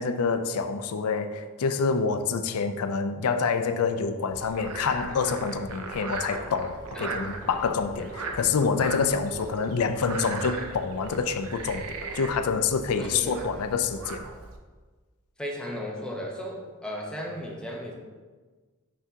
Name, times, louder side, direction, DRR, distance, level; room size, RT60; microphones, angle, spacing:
voice 1, 0.0-11.9 12.1-14.2, left 5 dB, 75° left, 9 dB, 0.4 m, -27 dB
Frog, 4.3-14.6, right 3 dB, 75° right, 0.7 m, -38 dB
voice 2, 13.0-13.6 15.4-17.9, equal, 5° left, -2 dB, 0.9 m, -36 dB
5.9 x 5.7 x 2.8 m, 1.4 s
head